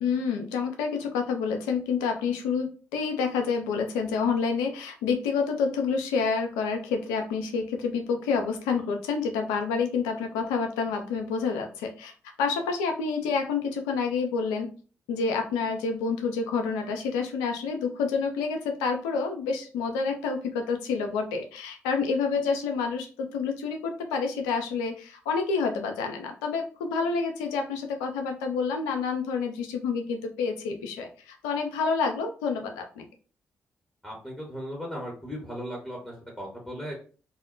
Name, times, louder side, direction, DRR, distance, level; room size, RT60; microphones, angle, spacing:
voice 1, 0.0-14.7 15.1-33.0, left 5 dB, 90° left, 4 dB, 0.4 m, -28 dB
voice 2, 34.0-36.9, equal, 5° left, -2 dB, 1.2 m, -37 dB
2.1 x 2.0 x 3.8 m, 0.39 s
hypercardioid pair, 45°, 6 cm